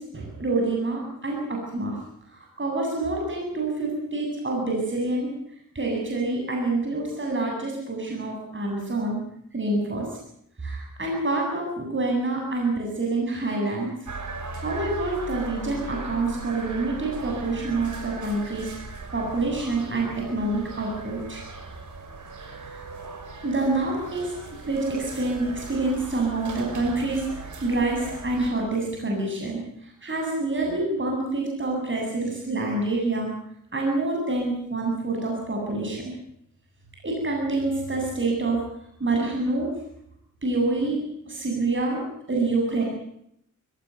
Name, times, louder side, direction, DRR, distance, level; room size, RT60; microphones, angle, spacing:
voice 1, 0.0-2.0 2.3-5.3 5.7-9.2 9.5-10.1 10.6-13.9 14.6-18.7 19.1-21.4 23.4-24.3 24.7-27.3 27.6-29.6 30.0-33.3 33.7-36.1 37.0-38.6 39.0-39.7 40.4-41.0 41.3-42.0 42.3-42.8, right 2 dB, 35° right, -1 dB, 7.9 m, -27 dB
sound 1, 14.0-28.5, right 3 dB, 65° right, 5.9 m, -38 dB
22.0 x 18.0 x 9.4 m, 0.72 s
cardioid pair, 70°, 33 cm